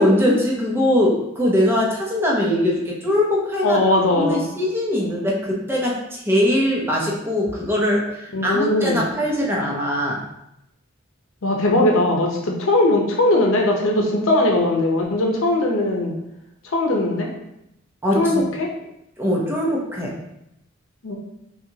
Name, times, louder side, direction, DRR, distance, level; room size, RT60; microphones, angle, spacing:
voice 1, 0.0-10.2 18.0-18.4 19.2-20.2, left 1 dB, 10° right, -3 dB, 0.7 m, -21 dB
voice 2, 3.6-4.4 8.3-9.1 11.4-16.2 16.7-17.3 18.1-18.7 21.0-21.2, left 1 dB, 85° left, 0 dB, 0.8 m, -19 dB
5.7 x 2.4 x 2.8 m, 0.84 s
head